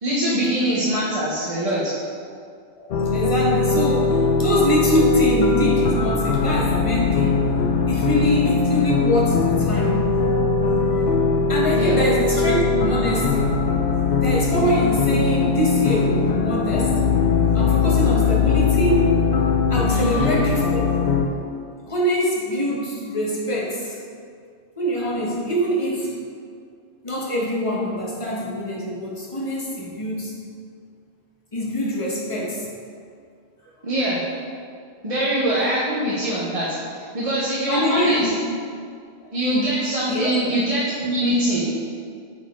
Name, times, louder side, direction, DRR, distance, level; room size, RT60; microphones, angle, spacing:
voice 1, 0.0-1.9 11.7-12.0 19.9-20.3 33.8-34.2 35.0-38.3 39.3-41.6, right 1 dB, 35° right, -8 dB, 1.0 m, -23 dB
voice 2, 2.8-7.4 7.9-10.0 11.5-13.6 14.2-17.0 17.5-19.0 19.7-20.8 21.9-24.0 24.8-26.1 27.0-30.3 31.5-32.7 37.7-38.3 40.1-40.4, equal, 30° left, -4 dB, 1.3 m, -24 dB
sound 1, 2.9-21.3, left 4 dB, 60° left, 0.7 m, -20 dB
8.6 x 4.1 x 3.7 m, 2.2 s
omnidirectional pair, 1.1 m